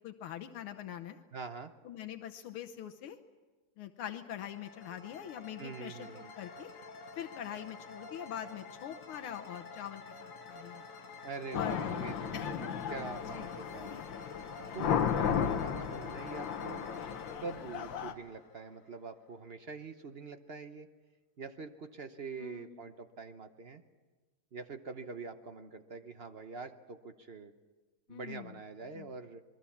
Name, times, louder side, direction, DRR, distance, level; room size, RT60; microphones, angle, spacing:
voice 1, 0.0-1.2 1.9-3.2 3.8-6.1 6.3-6.7 7.2-10.8 11.5-11.9 12.3-12.7 13.3-13.5 22.4-22.8 28.1-28.6 28.9-29.1, left 10 dB, 80° left, 6 dB, 1.8 m, -43 dB
voice 2, 1.3-1.7 5.6-6.3 11.2-14.0 14.7-16.8 17.4-20.9 21.4-23.8 24.5-27.5 28.1-29.4, right 4 dB, 55° right, 8 dB, 0.7 m, -44 dB
sound 1, 4.3-19.1, left 3 dB, 45° left, 1.5 m, -49 dB
sound 2, 11.5-18.1, left 8 dB, 65° left, 1.8 m, -35 dB
27.0 x 22.0 x 7.2 m, 1.3 s
omnidirectional pair, 2.3 m